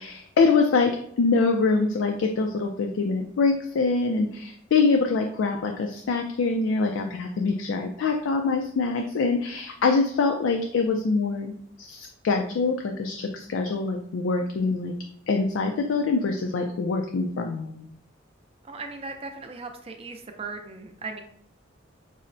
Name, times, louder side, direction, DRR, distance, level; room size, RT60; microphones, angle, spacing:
voice 1, 0.0-11.5 11.8-14.9 15.3-17.9, left 4 dB, 80° left, 3 dB, 0.3 m, -24 dB
voice 2, 14.4-14.7 18.6-21.2, right 3 dB, 30° right, 5 dB, 0.4 m, -38 dB
5.3 x 2.0 x 2.5 m, 0.69 s
head